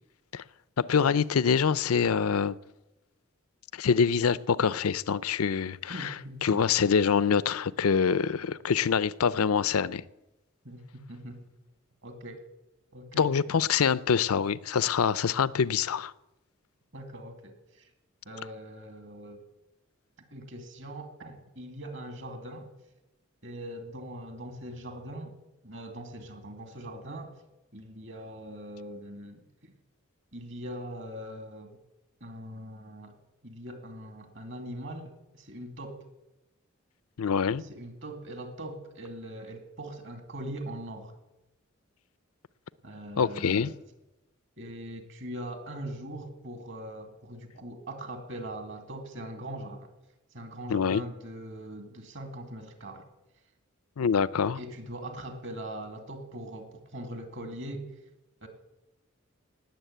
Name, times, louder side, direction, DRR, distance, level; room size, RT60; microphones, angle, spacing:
voice 1, 0.8-2.6 3.7-6.1 6.4-10.0 13.1-16.1 37.2-37.6 43.2-43.7 50.7-51.0 54.0-54.6, left 6 dB, 85° left, 0.5 m, -25 dB
voice 2, 5.9-6.6 10.6-11.5 12.0-12.4 12.9-13.4 16.9-17.9 18.2-19.5 20.3-22.7 23.4-25.3 25.6-27.4 27.7-29.7 30.3-31.8 32.2-33.2 33.4-36.1 37.5-41.2 42.8-43.7 44.6-49.9 50.3-53.0 54.5-57.9 58.4-58.5, right 1 dB, 55° right, 2.5 m, -41 dB
18.5 x 7.3 x 9.1 m
head